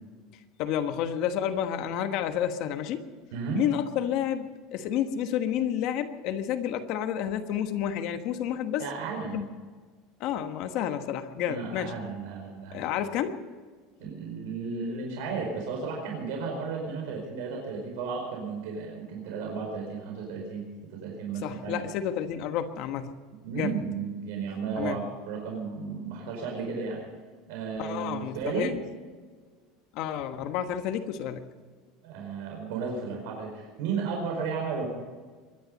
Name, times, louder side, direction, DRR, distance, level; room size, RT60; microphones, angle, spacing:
voice 1, 0.6-3.0 3.5-8.8 9.3-9.5 10.2-11.9 12.7-13.4 21.4-23.1 23.5-23.8 24.7-25.0 27.8-28.8 29.9-31.4, left 10 dB, 50° left, 8 dB, 1.3 m, -30 dB
voice 2, 3.3-3.6 8.8-9.4 11.4-12.9 14.0-21.8 23.3-27.0 27.5-28.7 32.0-34.9, right 5 dB, 75° right, 0 dB, 4.8 m, -34 dB
23.5 x 11.5 x 5.4 m, 1.5 s
cardioid pair, 170°, 0 cm